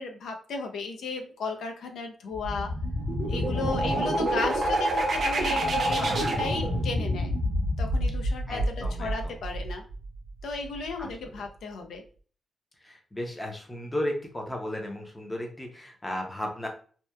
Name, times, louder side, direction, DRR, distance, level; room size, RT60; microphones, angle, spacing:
voice 1, 0.0-2.7 3.3-7.3 7.8-9.8 10.4-12.0, left 4 dB, 90° left, 4 dB, 0.4 m, -34 dB
sound 1, 2.3-9.9, right 1 dB, 55° right, 0.5 m, -27 dB
voice 2, 8.5-9.4 11.0-11.4 12.8-16.7, left 1 dB, 10° left, 2 dB, 0.5 m, -35 dB
2.8 x 2.1 x 2.2 m, 0.42 s
wide cardioid pair, 170°, 0 cm